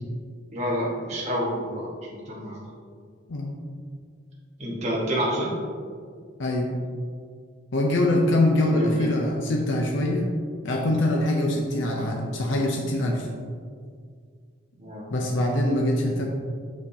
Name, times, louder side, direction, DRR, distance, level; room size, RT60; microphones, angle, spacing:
voice 1, 0.5-1.9 2.2-2.6 4.6-5.5 8.6-9.1 11.9-12.1 14.8-15.1, equal, 35° right, -6 dB, 1.2 m, -28 dB
voice 2, 6.4-6.7 7.7-10.3 10.6-13.3 15.1-16.2, left 1 dB, 70° left, 0 dB, 0.6 m, -23 dB
6.4 x 6.0 x 2.8 m, 2.1 s
head